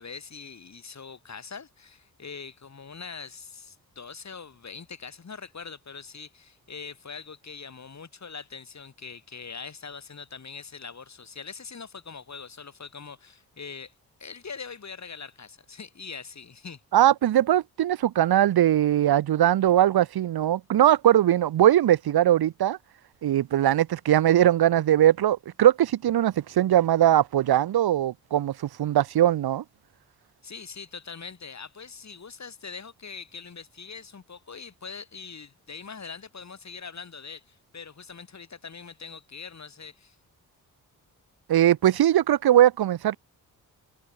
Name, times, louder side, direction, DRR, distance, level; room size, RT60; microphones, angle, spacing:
voice 1, 0.0-13.9 14.2-16.8 30.4-40.2, left 5 dB, 50° left, 7.1 m, -42 dB
voice 2, 16.9-22.8 23.2-29.6 41.5-43.2, right 12 dB, 85° right, 2.0 m, -20 dB
cardioid pair, 70°, 36 cm